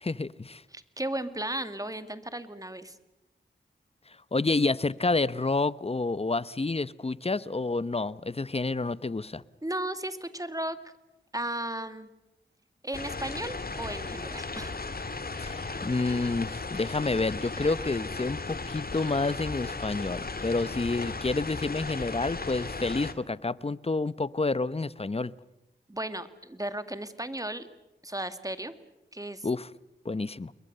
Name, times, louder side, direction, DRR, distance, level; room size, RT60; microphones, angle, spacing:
voice 1, 0.0-0.6 4.3-9.4 15.4-25.3 29.4-29.7 30.0-30.5, left 3 dB, 30° left, 18 dB, 0.9 m, -29 dB
voice 2, 0.7-3.0 9.6-10.8 11.3-12.1 12.8-14.8 25.9-27.7 28.0-28.7 29.1-29.5, right 1 dB, 15° right, 11 dB, 2.1 m, -35 dB
sound 1, 12.9-23.1, left 3 dB, 50° left, 2.0 m, -36 dB
29.5 x 22.0 x 6.8 m, 0.95 s
cardioid pair, 45°, 20 cm